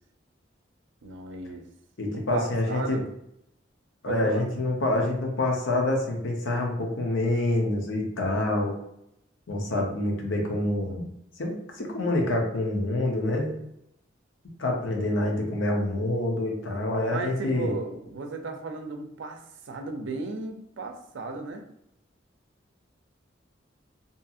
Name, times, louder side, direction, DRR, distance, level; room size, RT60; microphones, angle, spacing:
voice 1, 1.0-1.7 2.1-3.1 4.1-4.4 17.1-21.6, right 3 dB, 80° right, 4 dB, 0.4 m, -35 dB
voice 2, 2.0-3.0 4.0-8.8 9.5-11.1 11.4-13.6 14.6-17.7, left 1 dB, 85° left, 1 dB, 0.6 m, -27 dB
2.6 x 2.4 x 2.6 m, 0.77 s
head